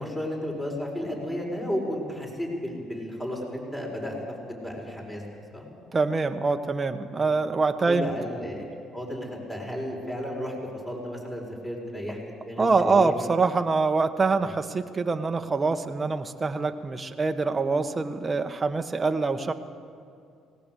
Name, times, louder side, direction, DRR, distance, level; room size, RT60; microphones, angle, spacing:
voice 1, 0.0-4.2 4.5-5.2 5.5-5.7 7.1-7.3 7.9-8.6 8.9-10.6 10.8-13.1 14.4-14.5, equal, 15° left, -1 dB, 6.7 m, -33 dB
voice 2, 5.9-8.1 12.6-19.5, right 4 dB, 25° right, 6 dB, 1.3 m, -25 dB
19.0 x 18.5 x 8.3 m, 2.4 s
supercardioid pair, 75°, 0 cm